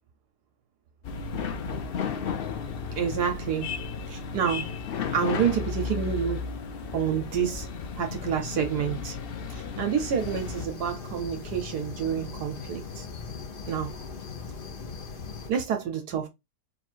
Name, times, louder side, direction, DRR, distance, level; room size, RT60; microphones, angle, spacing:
sound 1, 1.0-10.7, left 6 dB, 90° left, 0.5 m, -34 dB
voice 1, 2.9-3.7 4.1-4.7 5.1-6.4 6.9-7.7 8.0-9.2 9.5-13.1 13.7-13.9 15.5-16.3, right 8 dB, 75° right, 1.3 m, -28 dB
sound 2, 10.2-15.5, left 5 dB, 50° left, 0.7 m, -39 dB
3.9 x 2.4 x 4.4 m
omnidirectional pair, 1.8 m